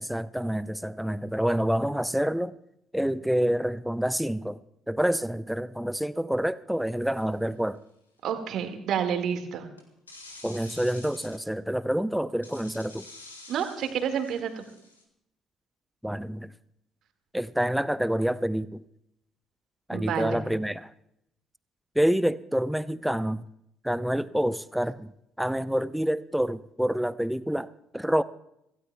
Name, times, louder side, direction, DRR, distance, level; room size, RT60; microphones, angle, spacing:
voice 1, 0.0-2.6 2.9-4.6 4.9-7.8 10.4-13.1 16.0-16.5 17.3-18.8 19.9-20.9 21.9-23.5 23.8-25.1 25.4-28.2, equal, 5° right, 16 dB, 0.6 m, -27 dB
sound 1, 7.2-7.4 9.8-11.5 12.4-15.0, left 2 dB, 85° left, 1.6 m, -48 dB
voice 2, 8.2-9.7 13.5-14.6 19.9-20.4, right 8 dB, 55° right, 6 dB, 1.8 m, -29 dB
26.0 x 16.5 x 2.2 m, 0.80 s
figure-of-eight pair, 50°, 0 cm